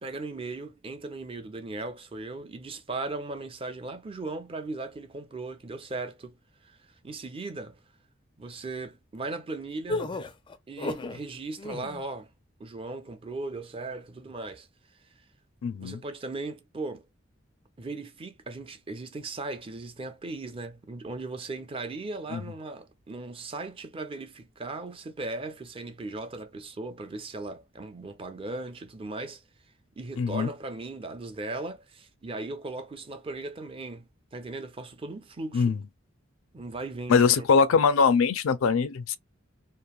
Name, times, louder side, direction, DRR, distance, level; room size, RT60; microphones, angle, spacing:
voice 1, 0.0-6.3 6.6-7.8 8.4-10.0 10.7-12.3 12.6-14.7 14.9-15.0 15.8-17.0 17.8-29.4 30.0-35.8 36.5-37.3 37.7-37.8, right 3 dB, 30° right, 0.5 m, -37 dB
sound 1, 9.9-11.2 11.6-12.0, left 2 dB, 25° left, 0.4 m, -33 dB
voice 2, 15.6-16.0 22.3-22.4 30.2-30.5 35.5-35.8 37.1-39.2, left 5 dB, 90° left, 0.4 m, -22 dB
3.0 x 2.4 x 2.3 m
head